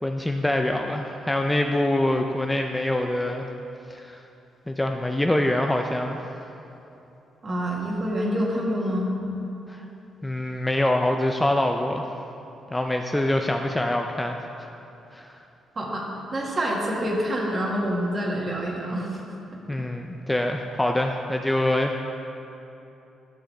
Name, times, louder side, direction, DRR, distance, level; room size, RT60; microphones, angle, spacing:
voice 1, 0.0-3.5 3.9-4.2 4.7-6.3 9.7-9.8 10.2-12.1 12.7-14.7 15.1-15.4 19.7-22.1, left 1 dB, 10° left, 3 dB, 0.4 m, -25 dB
voice 2, 7.4-9.1 15.7-16.0 16.3-19.2, equal, 35° right, -2 dB, 1.6 m, -26 dB
12.0 x 6.3 x 3.3 m, 2.9 s
cardioid pair, 100°, 0 cm